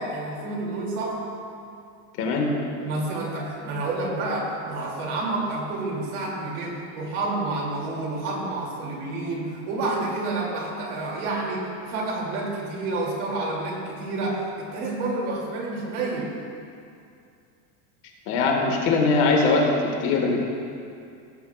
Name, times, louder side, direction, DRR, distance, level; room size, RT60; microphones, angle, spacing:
voice 1, 0.0-1.3 2.8-16.3, right 2 dB, 70° right, -3 dB, 2.5 m, -29 dB
voice 2, 2.2-2.5 18.3-19.7 20.0-20.5, left 4 dB, 45° left, 0 dB, 1.4 m, -21 dB
17.5 x 8.0 x 2.3 m, 2.4 s
cardioid pair, 175°, 46 cm